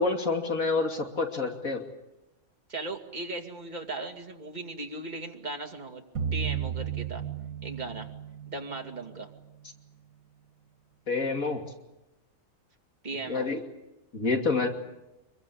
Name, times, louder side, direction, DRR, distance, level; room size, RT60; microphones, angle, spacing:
voice 1, 0.0-1.8 11.1-11.6 13.3-13.6 14.1-14.7, left 4 dB, 80° left, 3 dB, 3.1 m, -27 dB
voice 2, 2.7-6.0 6.3-7.2 7.6-8.1 8.5-9.3 13.0-13.5, right 2 dB, 30° right, 2 dB, 2.7 m, -37 dB
sound 1, 6.2-9.3, right 8 dB, 90° right, 2.0 m, -34 dB
26.0 x 23.0 x 8.6 m, 0.94 s
omnidirectional pair, 1.4 m